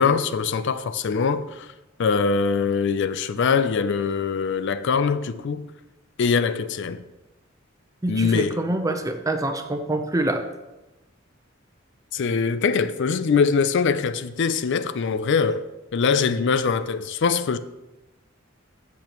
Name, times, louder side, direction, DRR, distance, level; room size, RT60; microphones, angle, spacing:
voice 1, 0.0-1.7 2.0-5.7 6.2-7.0 8.1-8.6 12.1-17.6, left 5 dB, 60° left, 0.4 m, -23 dB
voice 2, 8.0-10.4, right 2 dB, 15° right, 0.8 m, -25 dB
13.5 x 6.9 x 3.0 m
head